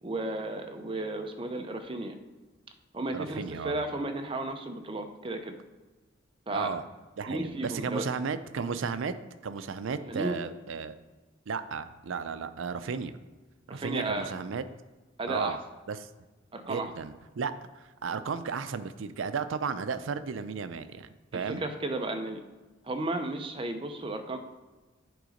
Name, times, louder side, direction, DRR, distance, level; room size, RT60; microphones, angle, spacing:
voice 1, 0.0-2.2 2.9-5.5 6.5-6.7 7.3-8.0 10.0-10.4 13.7-14.3 15.2-15.6 16.5-16.9 21.3-22.4 22.8-24.4, right 2 dB, 25° right, 6 dB, 0.6 m, -34 dB
voice 2, 3.1-3.8 6.5-6.8 7.2-9.1 9.4-11.0 11.5-13.2 13.7-14.6 15.3-15.6 15.9-16.1 16.6-21.6, right 5 dB, 80° right, 11 dB, 0.5 m, -34 dB
7.8 x 3.9 x 5.1 m, 1.2 s
head